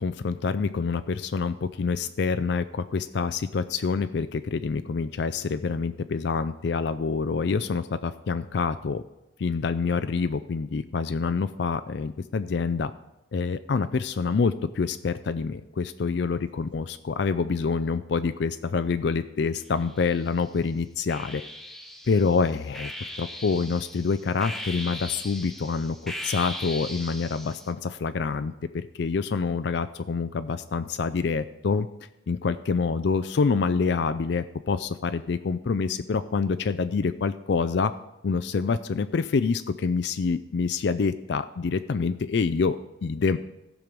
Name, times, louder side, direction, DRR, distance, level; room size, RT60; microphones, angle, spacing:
voice 1, 0.0-9.0 9.4-12.9 13.3-21.4 22.1-22.9 23.2-31.9 32.3-37.9 38.2-43.4, left 5 dB, 65° left, 11 dB, 0.4 m, -26 dB
sound 1, 19.7-20.4 21.1-27.7, left 1 dB, ahead, 0.8 m, -39 dB
15.0 x 6.1 x 5.2 m, 0.92 s
head